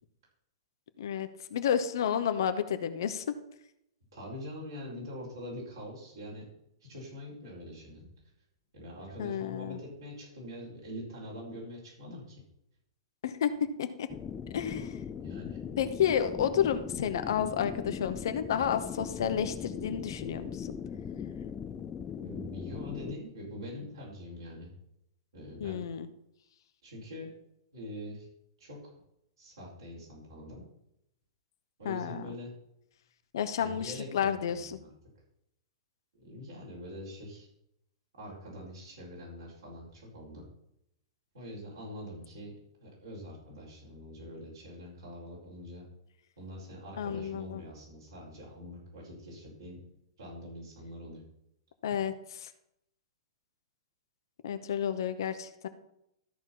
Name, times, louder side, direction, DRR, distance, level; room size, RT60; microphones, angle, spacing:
voice 1, 1.0-3.3 9.2-9.8 13.2-13.5 13.8-14.1 14.5-15.0 15.8-20.7 25.6-26.1 31.8-32.3 33.3-34.8 47.0-47.6 51.8-52.1 52.4-52.5 54.4-55.7, left 8 dB, 60° left, 10 dB, 0.9 m, -31 dB
voice 2, 4.1-6.5 6.8-8.0 8.7-12.3 15.2-15.6 22.2-24.7 25.3-25.8 26.8-27.3 27.7-28.3 28.6-28.8 29.4-30.6 31.8-32.5 33.6-34.9 36.1-37.5 38.2-40.5 41.3-42.5 42.8-45.8 46.4-49.8 50.2-51.2, equal, 70° right, -5 dB, 4.7 m, -44 dB
sound 1, 14.1-23.2, left 7 dB, 20° left, 0.5 m, -40 dB
13.5 x 4.5 x 5.8 m, 0.78 s
figure-of-eight pair, 105°, 2 cm